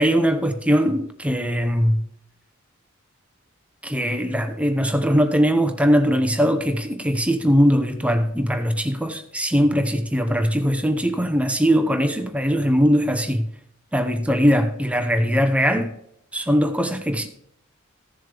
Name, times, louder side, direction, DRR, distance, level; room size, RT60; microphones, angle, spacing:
voice 1, 0.0-2.0 3.8-13.5 13.9-16.0 16.3-17.3, equal, 5° right, 0.9 m, -20 dB
15.5 x 7.2 x 3.5 m
head